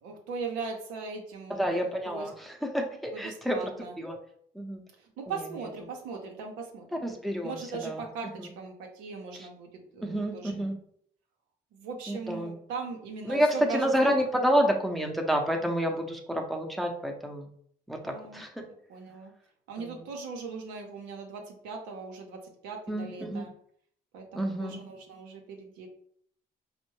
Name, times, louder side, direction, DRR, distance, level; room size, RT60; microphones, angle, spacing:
voice 1, 0.0-2.3 3.1-3.9 5.2-7.1 7.4-8.3 8.6-10.5 11.7-14.1 18.0-19.3 19.7-23.5 24.1-25.9, right 4 dB, 85° right, 1 dB, 0.7 m, -39 dB
voice 2, 1.5-4.2 4.5-4.8 5.3-5.7 7.0-8.1 9.3-9.5 10.0-10.8 12.1-12.6 13.2-17.5 17.9-18.6 19.8-20.0 22.9-23.5 24.3-24.8, equal, ahead, 2 dB, 0.7 m, -29 dB
4.2 x 2.1 x 3.1 m, 0.65 s
supercardioid pair, 60°, 19 cm